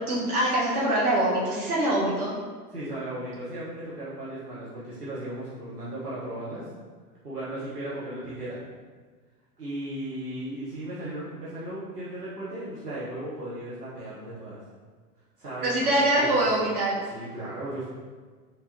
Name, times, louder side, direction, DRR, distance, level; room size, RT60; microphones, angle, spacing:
voice 1, 0.0-2.3 15.6-17.0, right 1 dB, 70° right, -6 dB, 1.5 m, -24 dB
voice 2, 2.7-6.6 7.2-8.6 9.6-14.6 15.4-15.7 16.2-16.3 17.1-17.9, right 1 dB, 90° right, -10 dB, 1.1 m, -36 dB
4.8 x 3.3 x 2.8 m, 1.5 s
figure-of-eight pair, 90°, 46 cm